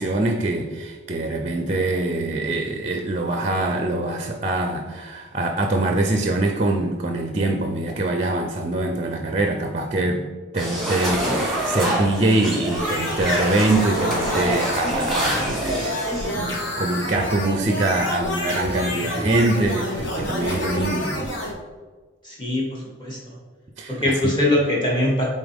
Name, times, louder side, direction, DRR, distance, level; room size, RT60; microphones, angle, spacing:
voice 1, 0.0-10.3 10.5-21.3 23.8-24.4, right 2 dB, 30° right, 4 dB, 0.5 m, -24 dB
sound 1, 10.6-16.3, right 1 dB, ahead, 1.5 m, -26 dB
sound 2, 12.7-21.5, left 1 dB, 60° left, 1.4 m, -28 dB
voice 2, 22.2-23.2 24.0-25.2, left 1 dB, 20° left, -4 dB, 1.7 m, -22 dB
8.6 x 4.1 x 3.5 m, 1.4 s
head